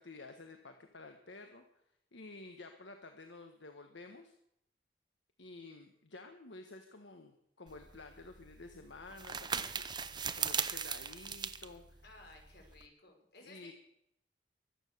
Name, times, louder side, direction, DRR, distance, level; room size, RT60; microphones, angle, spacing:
voice 1, 0.0-1.6 2.1-4.3 5.4-12.0 13.4-13.7, left 3 dB, 75° left, 5 dB, 1.4 m, -52 dB
sound 1, 7.7-12.9, right 7 dB, 25° right, 0.8 m, -39 dB
voice 2, 12.0-13.7, left 2 dB, 60° left, 2 dB, 5.3 m, -57 dB
23.5 x 9.1 x 6.8 m, 0.77 s
head